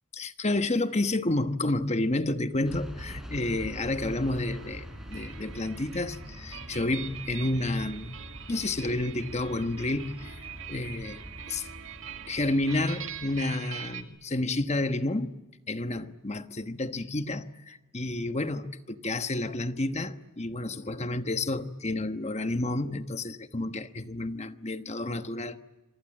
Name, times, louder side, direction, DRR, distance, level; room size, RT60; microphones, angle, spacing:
voice 1, 0.1-8.2 8.5-11.7 12.3-15.4 15.7-25.6, left 2 dB, 30° left, 1.2 m, -30 dB
sound 1, 2.6-13.5, equal, ahead, 4.9 m, -44 dB
sound 2, 4.0-14.0, right 8 dB, 70° right, 2.3 m, -44 dB
27.0 x 24.0 x 9.0 m
head